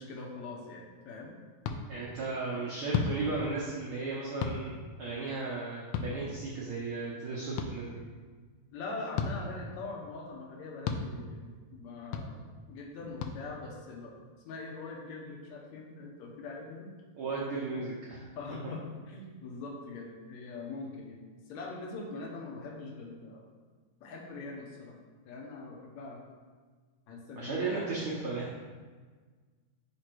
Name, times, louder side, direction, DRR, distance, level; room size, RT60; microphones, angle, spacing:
voice 1, 0.0-1.4 8.7-12.4 12.7-14.2 14.5-16.9 17.7-17.8 18.4-23.4 24.0-25.0 25.2-26.2 27.1-28.0, left 3 dB, 75° left, -1 dB, 2.1 m, -42 dB
sound 1, 1.6-1.8 2.9-3.1 4.4-4.6 5.9-6.1 7.6-7.7 9.1-9.3 10.8-11.0 12.1-12.3 13.2-13.3, left 6 dB, 90° left, 1.4 m, -31 dB
voice 2, 1.9-4.7 5.0-8.0 17.2-18.2 27.4-28.6, right 3 dB, 75° right, -5 dB, 1.2 m, -35 dB
5.0 x 5.0 x 4.5 m, 1.5 s
omnidirectional pair, 3.4 m